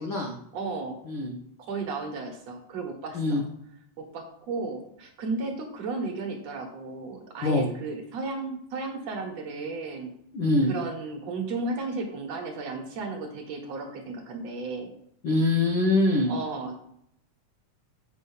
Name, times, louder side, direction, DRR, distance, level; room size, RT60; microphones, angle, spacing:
voice 1, 0.0-0.3 1.0-1.3 3.1-3.4 7.4-7.7 10.3-10.7 15.2-16.4, left 2 dB, 70° left, 0 dB, 1.1 m, -23 dB
voice 2, 0.5-1.0 1.6-3.4 4.0-10.1 10.7-14.9 16.3-16.8, right 3 dB, 60° right, 3 dB, 2.3 m, -34 dB
7.9 x 5.4 x 5.5 m, 0.71 s
omnidirectional pair, 3.7 m